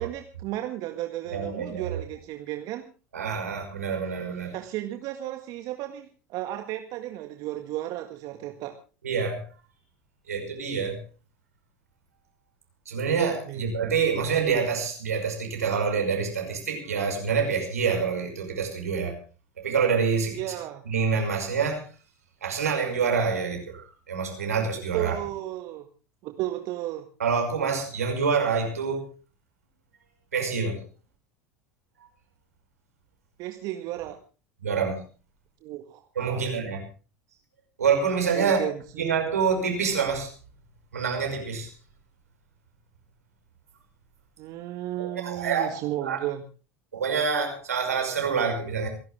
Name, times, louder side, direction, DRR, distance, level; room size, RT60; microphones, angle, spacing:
voice 1, 0.0-2.8 4.5-8.8 13.5-13.6 20.3-20.8 24.9-25.8 26.2-27.1 33.4-34.2 35.6-36.5 38.3-39.1 44.4-46.4, right 14 dB, 50° right, 1.8 m, -34 dB
voice 2, 1.3-2.0 3.1-4.6 9.0-9.4 10.3-11.0 12.9-19.2 19.6-20.4 20.9-21.9 22.4-25.1 27.2-29.1 30.3-30.8 34.6-35.0 36.2-36.8 37.8-38.6 39.0-40.3 40.9-41.7 45.0-45.7 46.0-46.2 46.9-48.9, right 6 dB, 80° right, 5.8 m, -26 dB
28.0 x 12.0 x 3.5 m
figure-of-eight pair, 80°, 8 cm